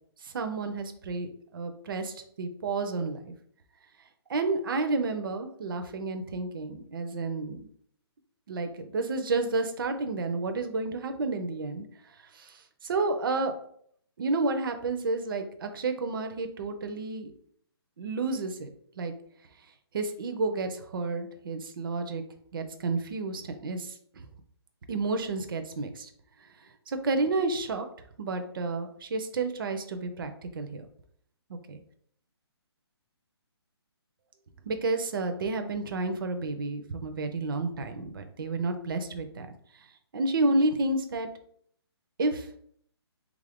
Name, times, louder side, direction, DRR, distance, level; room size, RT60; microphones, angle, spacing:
voice 1, 0.2-3.3 4.3-7.6 8.5-11.9 12.2-13.5 14.2-17.3 18.0-18.7 19.0-19.1 19.9-22.2 22.5-24.0 24.9-26.1 26.9-27.9 28.2-30.9 31.5-31.8 34.7-39.5 40.1-41.3 42.2-42.5, right 3 dB, 55° right, 7 dB, 0.5 m, -30 dB
3.5 x 2.4 x 3.4 m, 0.64 s
hypercardioid pair, 170°, 14 cm